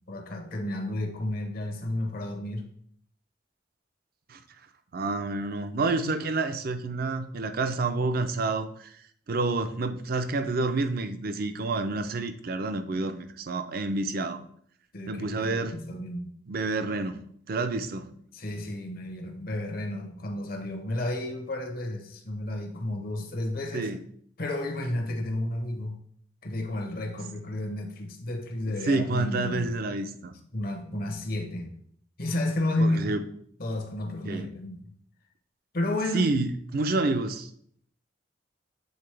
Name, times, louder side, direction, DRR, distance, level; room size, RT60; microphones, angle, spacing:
voice 1, 0.1-2.7 14.9-16.3 18.3-23.9 24.4-26.0 26.4-29.7 30.5-31.8 32.2-33.2 33.6-34.8 35.7-36.3, left 1 dB, 55° left, 0.9 m, -32 dB
voice 2, 4.9-8.9 9.3-14.4 15.1-16.0 16.5-18.1 23.7-24.0 28.9-30.3 32.8-33.2 34.3-34.5 36.1-37.5, right 3 dB, 55° right, 0.5 m, -29 dB
7.9 x 3.8 x 3.3 m
head